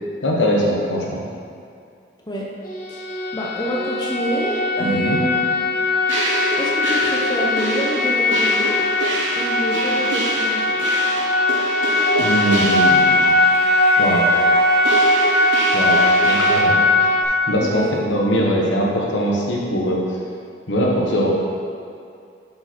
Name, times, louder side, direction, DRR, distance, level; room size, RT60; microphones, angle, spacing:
voice 1, 0.2-1.2 4.8-5.2 12.2-13.2 14.0-14.3 15.7-16.8 17.5-20.0 20.7-21.4, equal, 80° left, -2 dB, 1.3 m, -21 dB
sound 1, 2.6-17.2, left 2 dB, 45° left, 1.1 m, -19 dB
voice 2, 2.9-5.4 6.6-8.9 9.4-10.8 17.6-17.9, equal, 25° left, -3 dB, 0.8 m, -27 dB
sound 2, 6.1-16.6, right 1 dB, 90° right, 1.2 m, -26 dB
8.1 x 5.7 x 4.5 m, 2.4 s
head